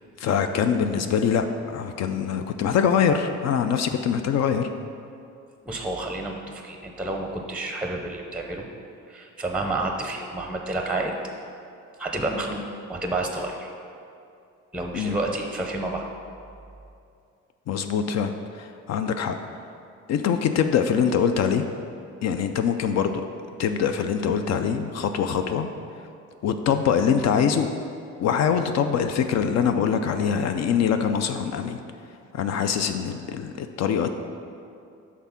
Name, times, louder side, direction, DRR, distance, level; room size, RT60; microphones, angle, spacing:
voice 1, 0.2-4.7 14.9-15.2 17.7-19.4 20.1-21.6 22.2-23.2 23.6-25.7 26.4-27.7 28.2-31.8 32.3-34.1, left 7 dB, 60° left, 7 dB, 0.4 m, -23 dB
voice 2, 5.7-8.7 9.1-11.1 12.0-12.6 12.9-13.7 14.7-16.0, right 2 dB, 5° right, 2 dB, 0.6 m, -29 dB
6.0 x 3.6 x 5.7 m, 2.5 s
cardioid pair, 90°, 30 cm